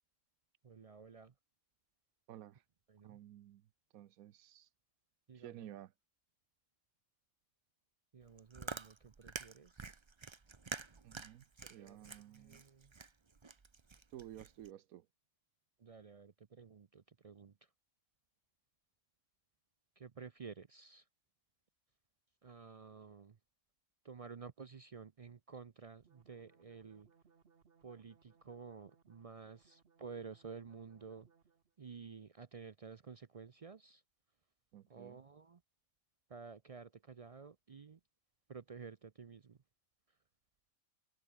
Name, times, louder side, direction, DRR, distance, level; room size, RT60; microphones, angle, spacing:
voice 1, 0.6-1.3 2.9-3.2 5.3-5.7 8.1-9.9 11.6-12.0 12.3-12.9 15.8-17.7 20.0-21.1 22.4-23.4 24.0-27.1 27.8-31.3 31.8-34.0 34.9-35.6 36.3-38.0 38.5-39.6, right 5 dB, 60° right, 0.3 m, -52 dB
voice 2, 2.3-2.6 3.0-3.7 3.9-4.7 5.3-5.9 11.0-12.6 14.1-15.1 34.7-35.2, right 12 dB, 80° right, 1.2 m, -53 dB
Chewing mastication, 8.2-14.7, right 4 dB, 25° right, 0.7 m, -48 dB
sound 1, 26.0-31.8, right 5 dB, 45° right, 1.5 m, -70 dB
omnidirectional pair, 1.5 m